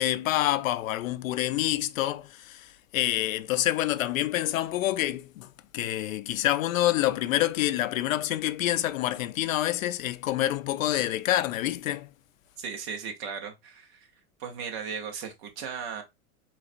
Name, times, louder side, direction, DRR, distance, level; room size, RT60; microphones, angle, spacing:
voice 1, 0.0-12.1, left 14 dB, 65° left, 0.6 m, -27 dB
voice 2, 12.6-14.1 14.4-16.0, right 6 dB, 20° right, 0.5 m, -36 dB
4.0 x 3.1 x 2.4 m
supercardioid pair, 155°, 44 cm